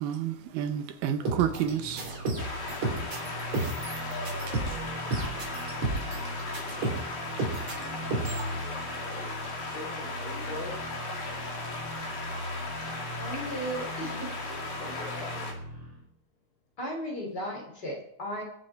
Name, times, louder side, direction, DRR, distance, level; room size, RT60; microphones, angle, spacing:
voice 1, 0.0-2.0 4.7-4.8, right 9 dB, 75° right, 8 dB, 2.2 m, -30 dB
sound 1, 1.2-7.1 7.4-7.8 8.1-8.5, right 2 dB, 35° right, 3.6 m, -32 dB
sound 2, 1.3-16.1, equal, 55° right, 4.2 m, -40 dB
sound 3, 2.4-15.5, left 3 dB, 45° left, 3.4 m, -37 dB
voice 2, 8.6-9.4 9.7-10.8 14.4-15.5, left 3 dB, 85° left, -6 dB, 6.3 m, -42 dB
voice 3, 13.2-14.3 16.8-18.4, equal, 30° left, 1 dB, 3.3 m, -35 dB
21.5 x 7.3 x 4.6 m, 0.75 s
omnidirectional pair, 4.5 m